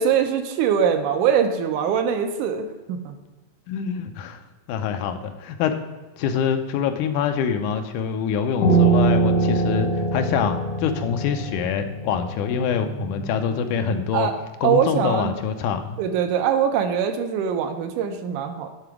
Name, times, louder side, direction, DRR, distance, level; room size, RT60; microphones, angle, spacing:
voice 1, 0.0-3.2 14.1-14.3 14.6-15.3 16.0-18.7, right 7 dB, 80° right, 6 dB, 2.1 m, -22 dB
voice 2, 3.7-4.4 4.7-5.8 6.2-14.3 14.6-16.0, left 7 dB, 80° left, 7 dB, 2.0 m, -25 dB
Piano, 8.6-13.9, right 3 dB, 60° left, 2.2 m, -23 dB
10.5 x 3.8 x 4.7 m, 1.2 s
omnidirectional pair, 3.7 m